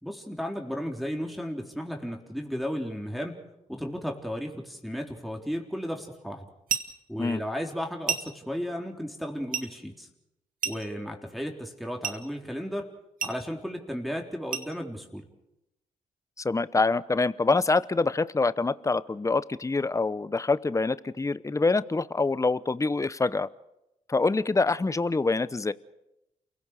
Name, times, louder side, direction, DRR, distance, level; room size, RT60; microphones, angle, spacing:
voice 1, 0.0-3.4 3.7-6.5 7.1-10.1 10.6-12.9 13.2-15.3, equal, ahead, 1 dB, 3.9 m, -34 dB
sound 1, 6.7-7.0 8.1-8.4 9.5-9.7 10.6-11.0 12.0-12.3 13.2-13.5 14.5-14.8, right 7 dB, 65° right, 1.9 m, -31 dB
voice 2, 16.4-23.5 24.1-25.7, left 3 dB, 20° left, 17 dB, 0.8 m, -25 dB
28.5 x 17.0 x 6.7 m, 0.90 s
supercardioid pair, 50°, 15 cm